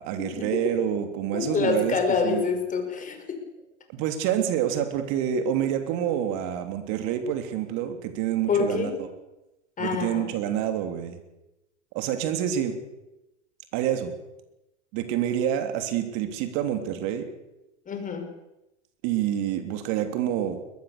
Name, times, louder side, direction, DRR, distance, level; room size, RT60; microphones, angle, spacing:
voice 1, 0.0-2.0 2.2-2.5 3.9-9.1 9.8-11.2 11.9-12.8 13.7-14.1 14.9-17.3 19.0-20.6, right 10 dB, 50° right, 7 dB, 3.3 m, -27 dB
voice 2, 1.3-3.4 8.5-9.0 9.8-10.3 17.9-18.3, left 5 dB, 20° left, 5 dB, 5.4 m, -26 dB
22.0 x 20.0 x 6.8 m, 0.96 s
hypercardioid pair, 105°, 35 cm